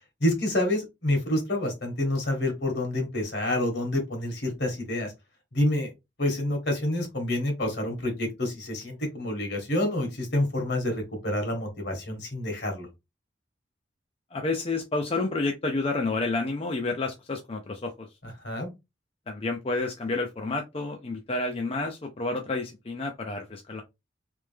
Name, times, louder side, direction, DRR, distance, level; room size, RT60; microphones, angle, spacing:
voice 1, 0.2-5.1 5.5-5.9 6.2-12.9 18.2-18.7, left 1 dB, 65° left, 3 dB, 1.8 m, -28 dB
voice 2, 14.3-18.1 19.3-23.8, left 3 dB, 35° left, 3 dB, 0.5 m, -30 dB
3.4 x 3.2 x 3.4 m, 0.22 s
head